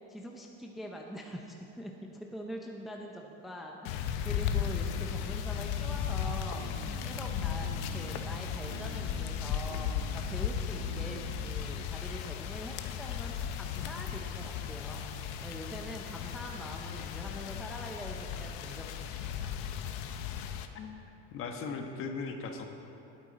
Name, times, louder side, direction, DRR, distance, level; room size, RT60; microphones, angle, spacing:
voice 1, 0.1-6.7 7.0-15.0 15.4-19.5, equal, ahead, 0 dB, 0.6 m, -44 dB
sound 1, 3.9-20.7, left 8 dB, 65° left, 0.9 m, -36 dB
sound 2, 6.2-11.9, right 11 dB, 65° right, 0.6 m, -47 dB
voice 2, 20.7-22.7, left 4 dB, 40° left, 4 dB, 1.3 m, -39 dB
19.5 x 8.9 x 4.1 m, 2.8 s
cardioid pair, 150°, 33 cm